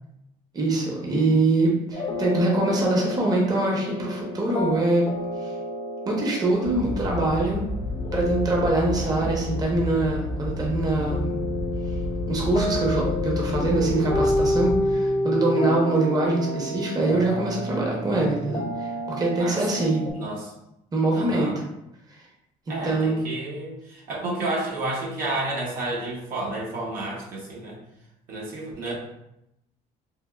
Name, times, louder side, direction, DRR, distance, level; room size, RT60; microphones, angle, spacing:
voice 1, 0.5-5.1 5.4-5.5 6.1-7.7 8.1-11.4 12.3-20.0 20.9-21.5 22.8-23.2, right 2 dB, 25° right, -2 dB, 0.7 m, -24 dB
sound 1, 1.9-20.1, left 1 dB, 35° left, 0.4 m, -30 dB
sound 2, 6.6-14.9, left 1 dB, 90° left, 0.6 m, -31 dB
voice 2, 9.0-9.5 19.4-19.8 20.1-20.5 21.1-21.6 22.7-27.8 28.3-28.9, right 2 dB, 70° right, -3 dB, 0.9 m, -31 dB
3.4 x 2.3 x 2.3 m, 0.84 s
cardioid pair, 105°, 15 cm